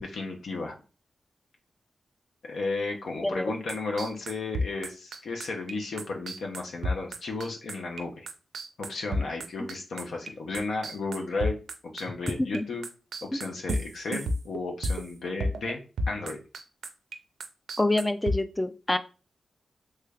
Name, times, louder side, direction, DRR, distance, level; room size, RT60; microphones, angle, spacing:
voice 1, 0.0-0.8 2.5-8.3 8.8-11.6 11.8-12.8 13.2-15.8 16.1-16.4, left 3 dB, 75° left, 2 dB, 0.7 m, -33 dB
sound 1, 3.7-12.6 12.8-15.1 15.4-15.7 16.0-17.2 17.4-18.4, equal, 85° right, 0.4 m, -31 dB
voice 2, 17.8-19.0, left 1 dB, 15° left, 10 dB, 0.3 m, -26 dB
3.3 x 3.2 x 2.3 m, 0.34 s
wide cardioid pair, 90°, 0 cm